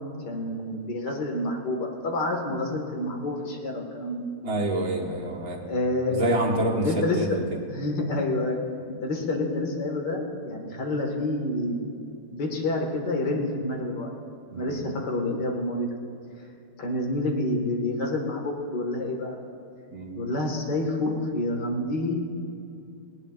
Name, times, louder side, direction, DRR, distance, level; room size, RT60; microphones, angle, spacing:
voice 1, 0.3-4.3 5.7-7.4 7.7-8.6 8.9-12.0 12.3-14.1 14.5-15.9 16.8-19.4 20.2-22.2, left 2 dB, 75° left, 1 dB, 2.3 m, -28 dB
voice 2, 4.4-5.6 6.1-7.3 14.5-14.9 19.9-20.2, right 1 dB, 60° right, -1 dB, 2.0 m, -27 dB
19.5 x 19.0 x 2.4 m, 2.5 s
omnidirectional pair, 1.8 m